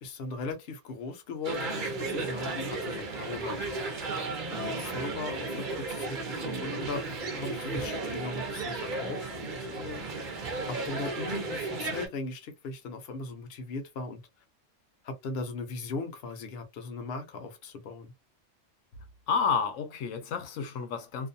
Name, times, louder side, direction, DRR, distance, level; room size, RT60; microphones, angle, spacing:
voice 1, 0.0-3.6 4.5-10.0 10.7-14.2 15.0-18.1, left 3 dB, 55° left, 0.8 m, -38 dB
sound 1, 1.4-12.1, right 3 dB, 50° right, 0.7 m, -34 dB
voice 2, 19.3-21.3, left 5 dB, 90° left, 1.0 m, -30 dB
2.5 x 2.2 x 2.6 m
omnidirectional pair, 1.3 m